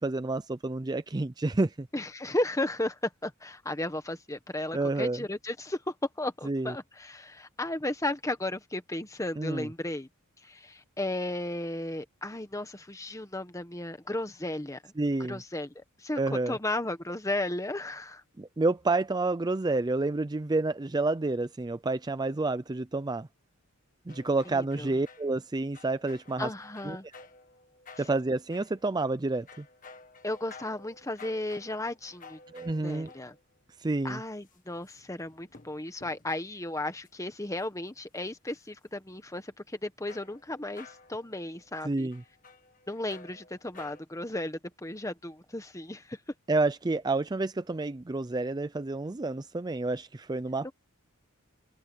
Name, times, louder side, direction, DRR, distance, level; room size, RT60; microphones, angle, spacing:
voice 1, 0.0-1.9 4.7-5.2 6.5-6.7 9.4-9.7 15.0-15.4 16.2-16.6 18.4-23.3 24.1-26.5 26.8-27.0 28.0-29.6 32.5-33.1 33.8-34.2 41.8-42.2 46.5-50.7, right 2 dB, 20° right, 0.4 m, -29 dB
voice 2, 1.9-10.1 10.4-14.9 15.3-16.2 16.5-18.2 24.4-24.9 26.4-27.0 28.0-28.1 30.2-32.4 32.8-33.3 34.0-42.1 42.9-46.2 50.6-50.7, left 1 dB, 15° left, 1.4 m, -34 dB
sound 1, 24.1-33.6 34.4-36.3 37.0-37.1 37.6-37.9 38.5-38.7 40.1-44.0, left 4 dB, 40° left, 1.7 m, -53 dB
open air
head